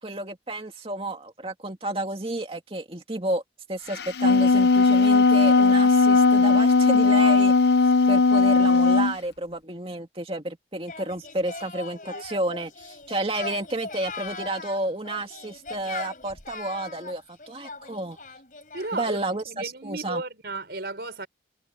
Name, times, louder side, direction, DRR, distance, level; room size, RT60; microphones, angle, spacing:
voice 1, 0.0-3.4 3.7-7.5 8.1-18.2 18.9-20.2, right 1 dB, 30° right, 2.3 m, -31 dB
Wind instrument woodwind instrument, 4.0-9.1, left 3 dB, 70° left, 0.7 m, -18 dB
Singing, 10.9-19.2, left 4 dB, 45° left, 6.0 m, -40 dB
voice 2, 18.7-19.2 19.5-21.3, right 3 dB, 70° right, 4.1 m, -34 dB
head